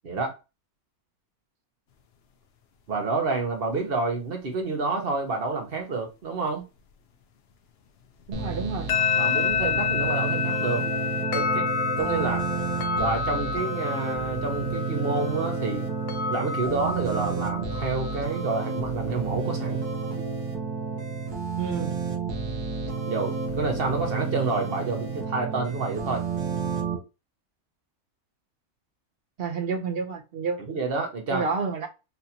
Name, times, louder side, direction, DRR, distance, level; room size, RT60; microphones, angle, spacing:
voice 1, 0.0-0.4 2.9-6.6 9.2-10.8 11.3-11.7 12.0-12.4 12.9-15.9 16.3-19.8 23.0-26.3 30.7-31.4, right 3 dB, 45° right, 1.1 m, -29 dB
voice 2, 8.3-8.9 21.6-21.9 29.4-30.6 31.3-31.9, right 5 dB, 60° right, 0.6 m, -29 dB
sound 1, 8.3-27.0, right 5 dB, 85° right, 1.5 m, -31 dB
sound 2, 8.7-18.4, left 6 dB, 60° left, 0.6 m, -29 dB
4.2 x 2.6 x 2.7 m
omnidirectional pair, 1.6 m